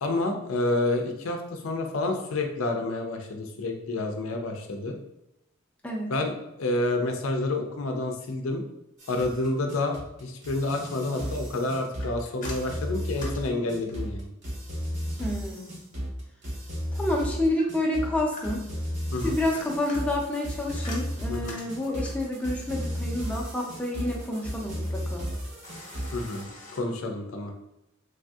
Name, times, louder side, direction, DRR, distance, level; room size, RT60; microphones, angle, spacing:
voice 1, 0.0-5.0 6.1-8.6 9.1-9.9 10.2-14.3 19.1-19.4 21.3-21.6 26.1-26.5 26.7-27.5, left 2 dB, 80° left, 3 dB, 0.5 m, -29 dB
sound 1, 9.0-26.4, equal, 60° right, 0.9 m, -34 dB
sound 2, 12.0-14.2 17.6-18.8 19.3-22.3 25.6-26.8, left 2 dB, 40° left, 0.7 m, -45 dB
voice 2, 15.2-15.7 16.9-18.6 19.2-25.2, left 1 dB, 5° left, -2 dB, 0.5 m, -29 dB
3.3 x 2.6 x 2.3 m, 0.85 s
head